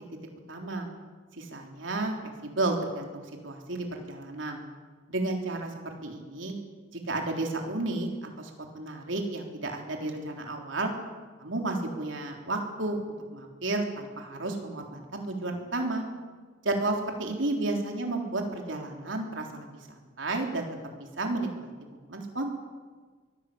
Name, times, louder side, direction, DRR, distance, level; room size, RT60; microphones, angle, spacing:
voice 1, 0.5-0.9 1.4-2.1 2.4-4.6 5.1-6.5 7.1-10.9 11.4-13.0 13.3-16.0 16.6-20.7 21.2-21.7 22.1-22.6, right 2 dB, 75° right, 2 dB, 3.8 m, -32 dB
23.5 x 17.5 x 8.7 m, 1.4 s
head